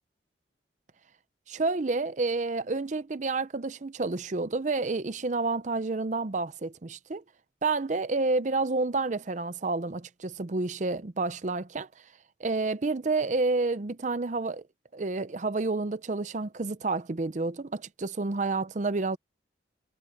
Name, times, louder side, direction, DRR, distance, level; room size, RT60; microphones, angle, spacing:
voice 1, 1.5-7.2 7.6-11.9 12.4-14.6 14.9-19.2, right 3 dB, 40° right, 0.6 m, -29 dB
head